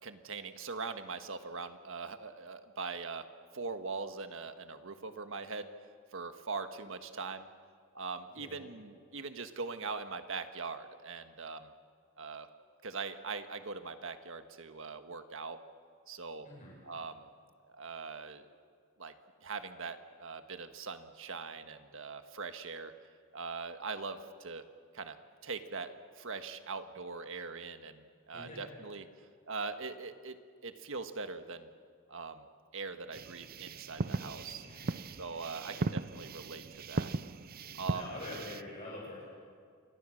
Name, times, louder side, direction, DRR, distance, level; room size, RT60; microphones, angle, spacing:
voice 1, 0.0-3.3 3.5-5.7 6.1-7.5 7.9-11.7 12.2-12.5 12.8-15.6 16.1-16.5 16.8-17.3 17.7-18.4 19.0-19.1 19.4-22.9 23.3-24.6 24.9-25.2 25.4-29.1 29.5-31.7 32.1-32.4 32.7-34.6 35.2-37.1 37.8-38.0, right 4 dB, 65° right, 8 dB, 1.6 m, -41 dB
voice 2, 8.3-8.7 16.4-16.7 28.3-28.7 34.6-35.4 35.6-35.9 37.9-39.2, left 2 dB, 35° left, -4 dB, 7.4 m, -46 dB
sound 1, 33.1-38.6, right 3 dB, 45° right, 0.6 m, -38 dB
28.5 x 23.5 x 6.5 m, 2.1 s
head